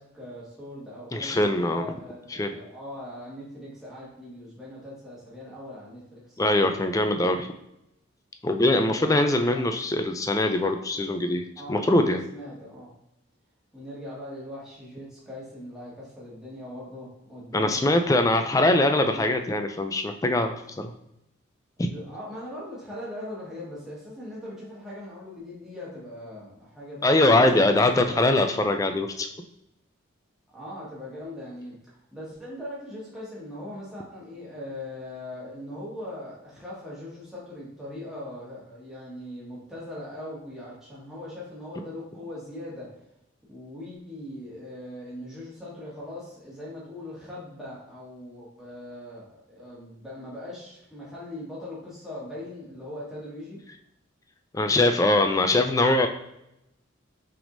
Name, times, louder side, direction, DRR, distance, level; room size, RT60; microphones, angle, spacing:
voice 1, 0.0-6.4 8.7-9.6 11.6-12.0 12.3-12.9 13.7-17.8 19.0-19.2 21.9-28.2 30.5-42.9 43.5-53.6, left 1 dB, ahead, -8 dB, 1.4 m, -40 dB
voice 2, 1.1-1.9 2.3-2.6 6.4-7.5 8.4-11.4 11.7-12.2 17.5-20.9 21.8-21.9 27.0-29.3 54.5-56.1, left 2 dB, 15° left, 6 dB, 0.3 m, -22 dB
5.9 x 3.5 x 2.6 m, 0.84 s
head